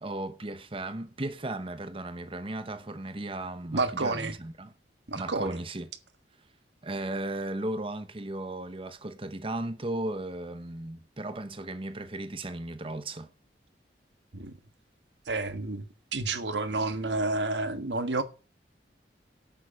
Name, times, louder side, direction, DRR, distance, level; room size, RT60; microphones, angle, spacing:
voice 1, 0.0-4.7 5.1-5.9 6.8-13.3, right 1 dB, 30° right, 1.0 m, -36 dB
voice 2, 3.7-4.3 5.1-5.6 14.3-14.5 15.3-15.8 16.1-18.2, right 3 dB, 90° right, 1.6 m, -30 dB
11.0 x 9.2 x 5.2 m
head